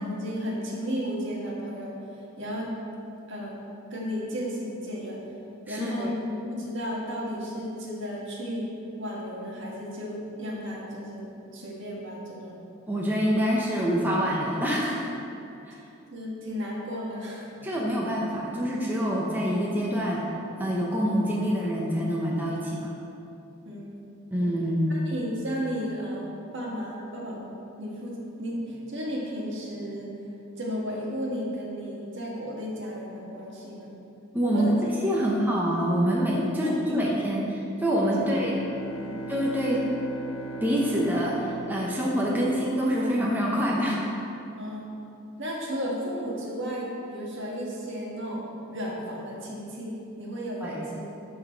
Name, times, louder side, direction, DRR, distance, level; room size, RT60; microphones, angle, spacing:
voice 1, 0.0-1.9 2.4-2.7 3.3-3.6 3.9-5.2 5.7-8.7 9.0-12.6 16.1-17.6 23.6-23.9 24.4-24.5 24.9-27.4 27.8-30.1 30.6-33.9 34.5-34.7 35.1-35.2 36.6-37.3 39.0-39.2 44.6-44.9 45.4-48.4 48.7-51.2, equal, 60° right, -3 dB, 1.6 m, -34 dB
voice 2, 5.7-6.1 12.9-15.1 15.6-15.8 17.6-20.2 20.6-22.9 24.3-24.9 34.3-38.6 39.3-39.8 40.6-44.0 50.6-50.9, equal, 10° right, -4 dB, 0.8 m, -26 dB
Bowed string instrument, 38.0-42.9, right 2 dB, 70° left, 0.8 m, -38 dB
12.0 x 4.1 x 4.5 m, 2.7 s
head